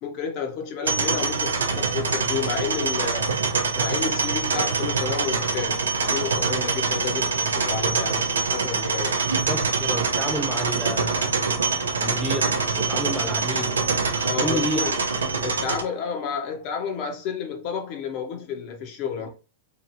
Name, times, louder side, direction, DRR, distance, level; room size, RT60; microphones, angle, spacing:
voice 1, 0.0-3.3 3.8-9.2 14.3-15.0 15.4-19.3, left 6 dB, 50° left, 0.8 m, -31 dB
sound 1, 0.8-15.8, right 4 dB, 80° right, 0.5 m, -24 dB
voice 2, 9.5-11.3 12.0-13.8 14.4-14.9 15.3-15.5, equal, ahead, 0.3 m, -31 dB
2.9 x 2.8 x 2.6 m
hypercardioid pair, 105°, 0 cm